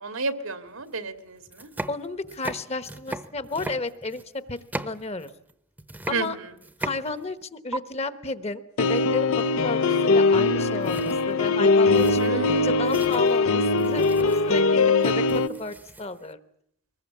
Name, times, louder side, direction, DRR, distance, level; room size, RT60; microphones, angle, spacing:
voice 1, 0.0-1.7 6.1-6.3 12.2-13.0, right 3 dB, 85° right, 9 dB, 2.1 m, -31 dB
sound 1, 0.8-0.9 1.4-5.5 5.8-7.4 7.7-7.8 10.3-10.6 10.8-16.3, right 1 dB, 10° right, 0.9 m, -38 dB
voice 2, 1.9-5.3 6.1-6.4 6.8-16.4, left 3 dB, 30° left, 13 dB, 1.1 m, -33 dB
sound 2, 8.8-15.5, left 3 dB, 85° left, 0.8 m, -21 dB
23.0 x 20.5 x 8.4 m, 0.72 s
head